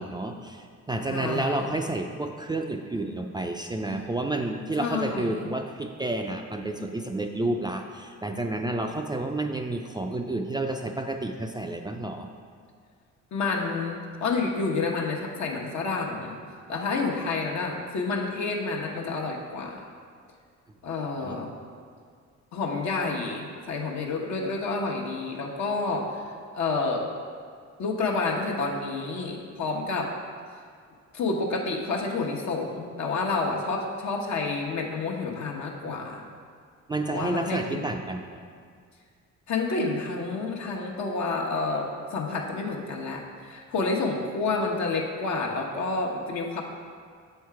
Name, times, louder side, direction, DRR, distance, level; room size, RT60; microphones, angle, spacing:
voice 1, 0.0-12.3 21.2-21.4 36.9-38.4, right 2 dB, 15° right, 3 dB, 0.3 m, -30 dB
voice 2, 1.1-1.6 4.8-5.5 13.3-16.4 16.7-19.8 20.8-21.5 22.5-26.2 26.5-27.1 27.8-30.1 31.1-36.2 37.1-37.8 39.5-46.6, left 3 dB, 65° left, 0 dB, 1.0 m, -29 dB
6.6 x 4.6 x 4.7 m, 2.1 s
cardioid pair, 90°, 30 cm